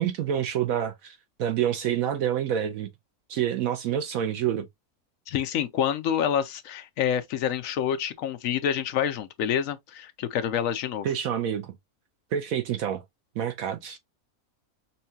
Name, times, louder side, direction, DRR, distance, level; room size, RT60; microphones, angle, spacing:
voice 1, 0.0-2.9 3.3-4.7 11.0-11.7 12.3-13.0 13.4-14.0, right 9 dB, 70° right, 1.0 m, -27 dB
voice 2, 5.3-11.1, left 9 dB, 65° left, 0.9 m, -27 dB
5.6 x 2.3 x 2.7 m
omnidirectional pair, 1.7 m